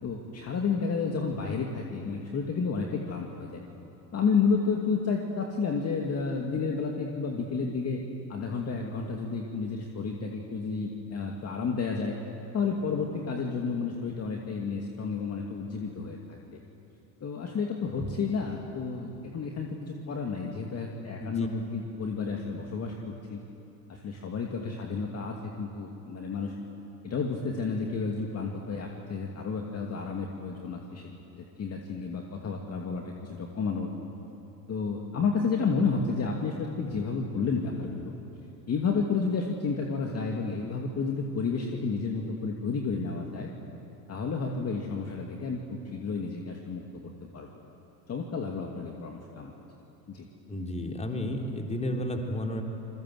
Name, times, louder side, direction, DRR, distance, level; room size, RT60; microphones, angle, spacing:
voice 1, 0.0-3.6 4.1-8.0 8.3-12.2 12.5-16.6 17.2-23.4 23.9-26.5 27.0-33.9 34.7-38.1 38.7-43.5 44.1-47.5 48.1-49.5 50.1-50.2, left 5 dB, 30° left, 0 dB, 2.5 m, -31 dB
voice 2, 50.5-52.6, left 1 dB, 15° left, 2 dB, 3.7 m, -32 dB
28.0 x 22.0 x 7.9 m, 2.9 s
hypercardioid pair, 80°, 48 cm